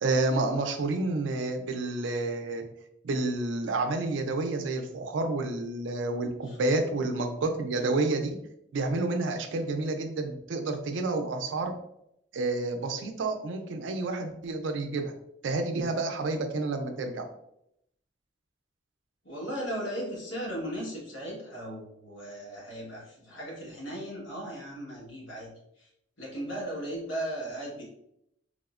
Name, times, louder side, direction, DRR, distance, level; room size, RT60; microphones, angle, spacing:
voice 1, 0.0-2.6 3.0-8.3 8.7-11.7 12.3-15.1 15.4-17.2, right 2 dB, 75° right, 5 dB, 0.4 m, -29 dB
voice 2, 19.2-25.5 25.8-25.9 26.2-27.8, right 1 dB, 80° left, -4 dB, 1.2 m, -37 dB
3.4 x 2.0 x 2.4 m, 0.78 s
head